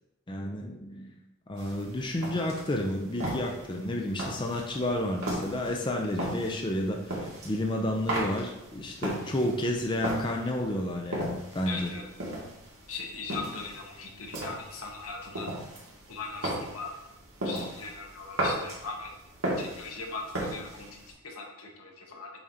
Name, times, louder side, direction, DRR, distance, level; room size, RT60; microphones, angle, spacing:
voice 1, 0.3-1.2 1.5-11.9, left 1 dB, 20° left, 1 dB, 0.5 m, -31 dB
sound 1, 1.6-21.1, right 1 dB, 80° right, 2.1 m, -37 dB
voice 2, 11.7-12.1 12.9-15.5 16.1-16.9 17.4-19.1 19.6-22.3, left 4 dB, 85° left, 1 dB, 1.3 m, -39 dB
7.1 x 2.9 x 4.9 m, 0.88 s
head